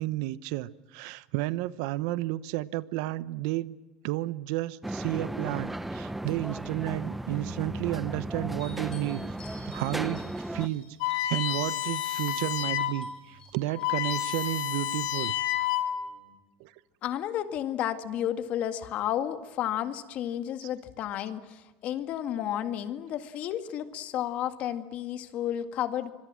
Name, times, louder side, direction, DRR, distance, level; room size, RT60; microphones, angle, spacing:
voice 1, 0.0-3.7 4.0-10.2 10.5-10.9 11.3-15.4 16.6-16.7, right 17 dB, 75° right, 1.0 m, -32 dB
sound 1, 4.8-10.7, right 1 dB, 5° right, 0.9 m, -35 dB
sound 2, 8.6-14.4, left 3 dB, 25° left, 7.2 m, -52 dB
sound 3, 11.0-13.0 13.4-13.5 13.7-16.1, left 12 dB, 85° left, 3.4 m, -30 dB
voice 2, 17.0-26.1, left 11 dB, 50° left, 2.0 m, -32 dB
26.0 x 22.5 x 7.7 m
cardioid pair, 140°, 3 cm